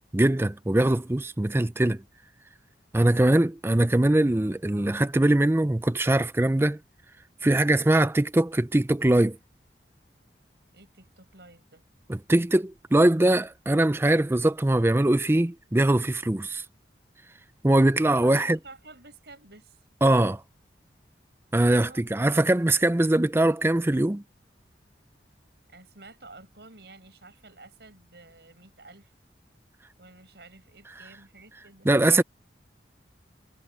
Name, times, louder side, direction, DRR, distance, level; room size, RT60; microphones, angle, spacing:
voice 1, 0.0-2.0 2.9-6.8 7.4-9.4 12.1-16.6 17.6-18.6 20.0-20.4 21.5-24.2 31.9-32.2, right 1 dB, 15° right, 0.5 m, -22 dB
voice 2, 3.0-3.5 10.7-11.8 18.2-19.8 21.6-22.0 25.7-29.1 30.0-31.9, right 2 dB, 65° right, 7.3 m, -50 dB
head